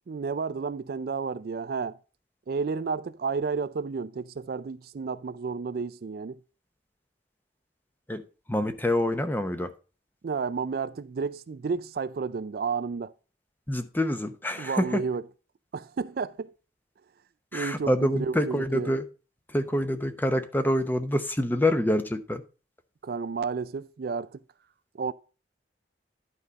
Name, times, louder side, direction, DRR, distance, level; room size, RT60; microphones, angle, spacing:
voice 1, 0.1-2.0 2.5-6.4 10.2-13.1 14.6-15.2 15.7-16.5 17.5-18.9 23.0-24.4 24.9-25.1, right 5 dB, 55° right, 0.4 m, -31 dB
voice 2, 8.5-9.7 13.7-15.0 17.5-19.0 19.5-22.4, left 1 dB, 10° left, 0.7 m, -26 dB
11.0 x 4.9 x 4.0 m
head